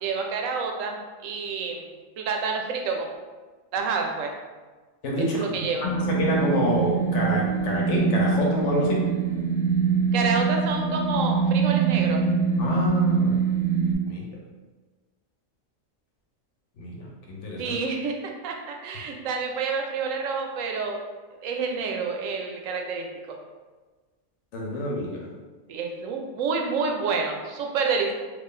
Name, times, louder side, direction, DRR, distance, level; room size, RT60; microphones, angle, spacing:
voice 1, 0.0-1.9 2.2-3.1 3.7-4.3 5.3-5.8 10.1-12.2 17.6-18.2 18.4-21.0 21.4-23.4 25.7-28.1, right 5 dB, 80° right, 2 dB, 0.9 m, -28 dB
voice 2, 5.0-5.4 5.9-9.0 12.6-13.4 14.0-14.3 16.8-17.8 24.5-25.3, left 1 dB, 70° left, -2 dB, 1.0 m, -27 dB
sound 1, 5.8-13.9, right 5 dB, 25° left, 0.4 m, -23 dB
3.1 x 2.4 x 3.6 m, 1.3 s
omnidirectional pair, 1.3 m